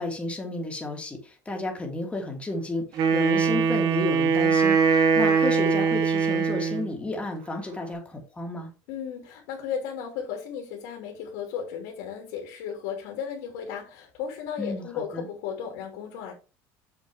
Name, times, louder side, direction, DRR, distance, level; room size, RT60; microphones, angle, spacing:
voice 1, 0.0-8.7 14.6-14.9 15.1-15.3, left 2 dB, 15° left, 3.1 m, -32 dB
Wind instrument woodwind instrument, 2.9-6.9, right 5 dB, 55° right, 2.5 m, -22 dB
voice 2, 8.9-16.3, left 7 dB, 85° left, 3.1 m, -35 dB
7.3 x 7.2 x 3.6 m
cardioid pair, 125°, 8 cm